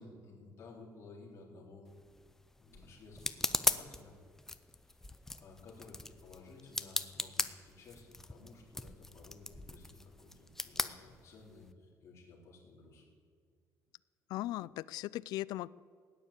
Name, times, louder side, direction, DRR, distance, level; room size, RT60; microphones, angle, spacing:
voice 1, 0.0-1.9 2.6-4.2 4.8-13.0, left 3 dB, 40° left, -3 dB, 3.8 m, -55 dB
sound 1, 1.9-11.7, left 2 dB, 5° left, 0.5 m, -39 dB
voice 2, 14.3-15.7, left 16 dB, 75° left, 20 dB, 0.3 m, -38 dB
16.5 x 9.8 x 8.4 m, 2.1 s
cardioid pair, 175°, 7 cm